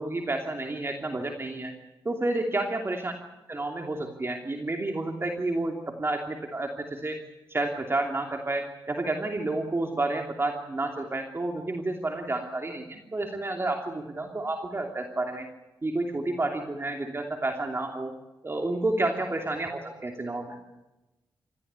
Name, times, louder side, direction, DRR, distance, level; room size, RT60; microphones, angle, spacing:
voice 1, 0.0-1.7 2.0-3.1 3.5-7.2 7.5-15.5 15.8-18.1 18.4-20.6, right 2 dB, 30° right, 3 dB, 2.9 m, -30 dB
28.0 x 14.5 x 8.3 m, 1.0 s
cardioid pair, 80°, 8 cm